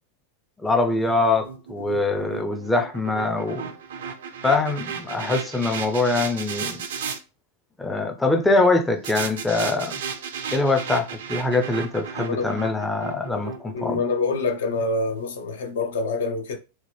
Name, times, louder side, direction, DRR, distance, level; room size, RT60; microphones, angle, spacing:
voice 1, 0.6-3.7 4.4-6.8 7.8-9.9 10.5-14.0, left 3 dB, 10° left, 0.4 m, -23 dB
sound 1, 1.0-7.2 9.0-15.3, right 6 dB, 60° right, 0.4 m, -35 dB
voice 2, 12.2-12.6 13.7-16.6, left 3 dB, 60° left, 0.5 m, -26 dB
2.8 x 2.1 x 3.2 m
figure-of-eight pair, 90°, 0 cm